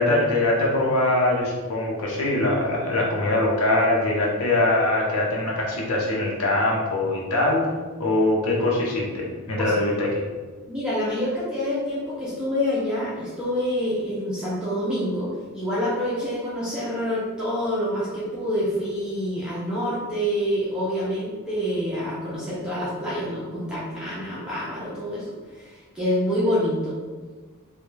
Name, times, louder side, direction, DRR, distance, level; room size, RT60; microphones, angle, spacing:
voice 1, 0.0-7.6 8.0-10.2, left 2 dB, 75° left, -2 dB, 0.6 m, -22 dB
voice 2, 10.7-25.3 25.5-27.0, equal, 5° right, -9 dB, 0.4 m, -27 dB
2.2 x 2.2 x 3.1 m, 1.4 s
head